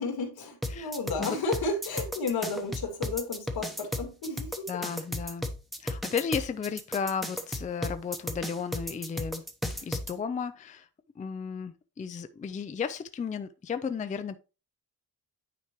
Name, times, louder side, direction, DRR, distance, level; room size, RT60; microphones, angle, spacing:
voice 1, 0.0-4.8, left 3 dB, 75° left, 2.4 m, -32 dB
sound 1, 0.6-10.1, left 1 dB, ahead, 0.9 m, -34 dB
voice 2, 4.7-5.5 5.8-9.4 9.8-10.9 11.2-14.4, left 6 dB, 20° left, 0.4 m, -34 dB
9.4 x 4.9 x 3.0 m
wide cardioid pair, 165°, 37 cm